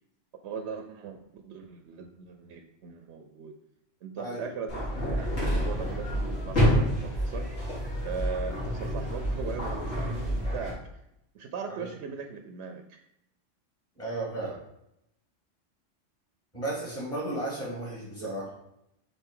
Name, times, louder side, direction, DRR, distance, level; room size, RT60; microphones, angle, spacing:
voice 1, 0.4-3.5 4.0-7.5 8.0-10.8 11.3-13.0 18.1-18.3, right 5 dB, 70° right, 6 dB, 0.8 m, -39 dB
sound 1, 4.7-10.7, equal, 85° left, 3.0 m, -28 dB
voice 2, 14.0-14.5 16.5-18.4, right 2 dB, 25° left, -5 dB, 2.1 m, -34 dB
7.1 x 3.8 x 3.7 m, 0.81 s
omnidirectional pair, 1.3 m